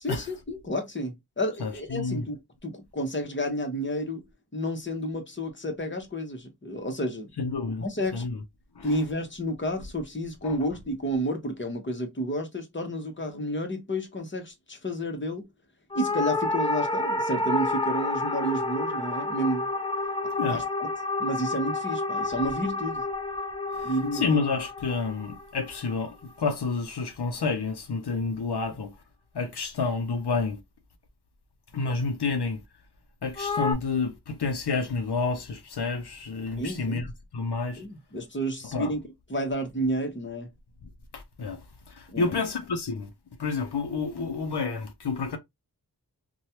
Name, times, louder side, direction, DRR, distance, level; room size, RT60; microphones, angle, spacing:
voice 1, 0.0-4.2 4.5-7.3 7.8-8.2 8.8-15.5 15.9-19.7 20.5-20.9 21.2-23.0 23.8-24.2 36.6-37.1 37.8-39.0 39.3-40.5 42.1-42.4, equal, 30° left, 0.9 m, -31 dB
voice 2, 1.6-2.2 7.4-7.8 8.1-8.4 8.8-8.9 10.4-10.5 20.4-20.6 24.1-28.9 29.3-30.6 31.7-32.6 33.2-37.1 37.3-37.8 38.7-38.9 41.1-41.6 42.0-43.1 43.4-45.4, left 4 dB, 80° left, 0.6 m, -29 dB
sound 1, 15.9-26.4 33.4-33.7, left 2 dB, 15° left, 0.5 m, -30 dB
3.1 x 2.3 x 2.7 m
wide cardioid pair, 55°, 39 cm